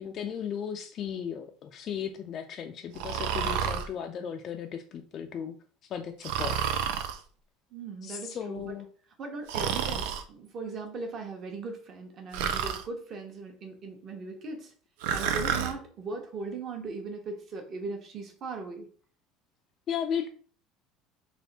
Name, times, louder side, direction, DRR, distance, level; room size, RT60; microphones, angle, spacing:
voice 1, 0.0-5.5 5.9-6.6 8.0-8.9 19.9-20.3, left 8 dB, 35° left, 4 dB, 0.3 m, -35 dB
Breathing, 2.9-3.9 6.2-7.2 9.5-10.2 12.3-12.8 15.0-15.7, right 8 dB, 90° right, 0.5 m, -30 dB
voice 2, 7.7-8.7 9.2-14.7 15.1-18.9, right 4 dB, 35° right, 3 dB, 0.9 m, -39 dB
3.4 x 2.5 x 4.0 m, 0.42 s
cardioid pair, 160°, 0 cm